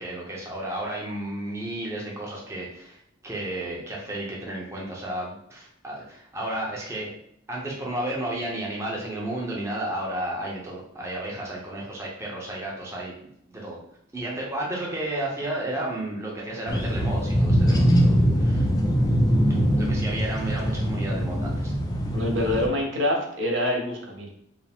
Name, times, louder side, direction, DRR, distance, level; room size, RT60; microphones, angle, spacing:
voice 1, 0.0-3.0 3.2-7.1 7.5-13.8 14.1-18.7 19.5-21.7, right 1 dB, 15° right, -3 dB, 0.6 m, -32 dB
sound 1, 16.7-22.7, equal, 20° left, 0.3 m, -22 dB
voice 2, 22.1-24.3, left 1 dB, 70° right, 1 dB, 0.8 m, -26 dB
4.7 x 2.0 x 3.5 m, 0.72 s
head